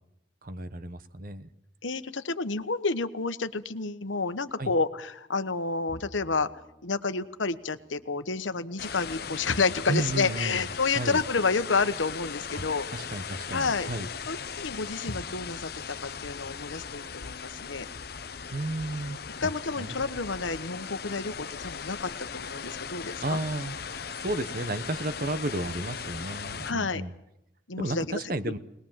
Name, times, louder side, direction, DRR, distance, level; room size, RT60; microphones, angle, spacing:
voice 1, 0.4-1.5 4.6-4.7 9.9-10.7 10.9-11.2 12.9-14.1 18.5-19.5 19.8-19.9 23.2-23.7 24.2-27.1 27.8-28.6, right 1 dB, 50° right, 12 dB, 1.1 m, -32 dB
voice 2, 1.8-6.5 6.8-13.1 13.5-13.9 14.2-17.9 19.4-23.4 26.6-27.0 27.7-28.5, left 4 dB, 85° left, 11 dB, 1.2 m, -30 dB
Bowed string instrument, 5.9-9.4, equal, 15° left, 1.8 m, -53 dB
sound 1, 8.8-26.7, left 6 dB, 55° left, 0.9 m, -38 dB
21.5 x 20.0 x 7.4 m, 0.84 s
head